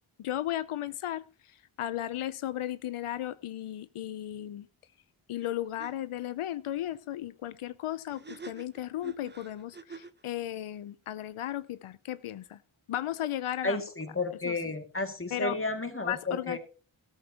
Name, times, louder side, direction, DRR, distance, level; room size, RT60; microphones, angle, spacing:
voice 1, 0.2-1.2 1.8-4.7 5.3-12.6 12.9-13.8 14.4-14.5 15.3-15.6 16.1-16.6, left 12 dB, 85° left, 0.6 m, -35 dB
sound 1, 5.4-5.5 5.8-5.9 8.1-10.2, right 4 dB, 20° right, 0.8 m, -46 dB
voice 2, 13.6-16.6, left 2 dB, 25° left, 2.1 m, -32 dB
13.5 x 13.0 x 2.8 m
cardioid pair, 50°, 49 cm